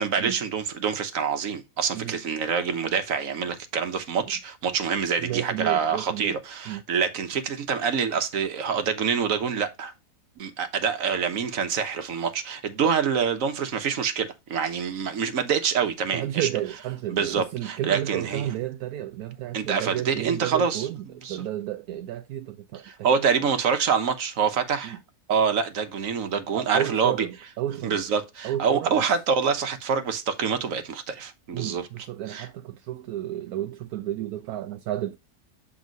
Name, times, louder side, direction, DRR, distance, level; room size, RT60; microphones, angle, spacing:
voice 1, 0.0-9.9 10.4-16.5 17.1-18.4 19.5-20.9 21.2-21.4 22.8-25.0 25.3-27.3 27.8-31.9 32.3-32.5, right 6 dB, 60° right, 1.3 m, -26 dB
voice 2, 5.2-6.4 6.7-6.8 16.1-21.0 21.3-23.3 24.8-25.0 26.5-28.0 28.4-29.1 31.5-35.2, right 13 dB, 80° right, 1.1 m, -32 dB
7.7 x 3.6 x 5.2 m
omnidirectional pair, 1.6 m